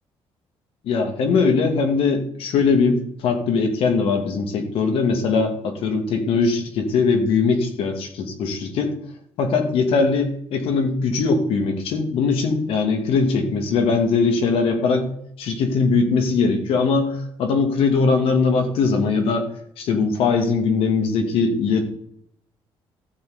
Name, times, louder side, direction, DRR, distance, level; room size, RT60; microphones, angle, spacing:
voice 1, 0.8-9.0 9.4-15.1 15.4-19.5 19.8-21.8, left 4 dB, 75° left, 5 dB, 2.3 m, -20 dB
14.0 x 7.3 x 4.0 m, 0.69 s
cardioid pair, 170°, 10 cm